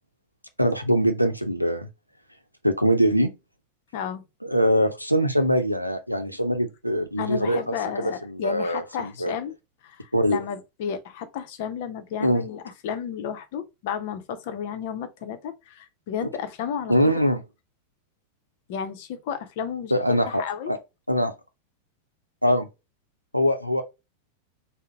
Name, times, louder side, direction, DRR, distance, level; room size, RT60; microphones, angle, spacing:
voice 1, 0.6-1.9 2.6-3.3 4.4-7.7 8.0-9.3 10.1-10.4 12.2-12.4 16.9-17.4 19.9-20.8 21.1-21.3 22.4-22.7 23.3-23.8, equal, 90° left, 0.5 m, -23 dB
voice 2, 3.9-4.2 7.2-9.5 9.8-17.1 18.7-20.7, left 8 dB, 50° left, 0.6 m, -32 dB
3.8 x 2.0 x 3.7 m
figure-of-eight pair, 90°, 0 cm